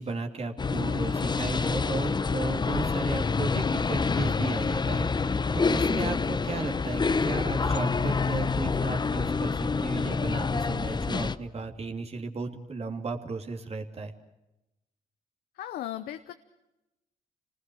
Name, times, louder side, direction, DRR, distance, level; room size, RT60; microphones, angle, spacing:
voice 1, 0.0-14.1, right 3 dB, 45° right, 3 dB, 2.9 m, -35 dB
sound 1, 0.6-11.4, left 4 dB, 30° left, 0.8 m, -27 dB
sound 2, 0.9-11.9, right 1 dB, ahead, 2.8 m, -52 dB
voice 2, 15.5-16.3, left 12 dB, 90° left, 9 dB, 0.8 m, -36 dB
27.0 x 19.5 x 6.3 m, 0.96 s
cardioid pair, 70°, 15 cm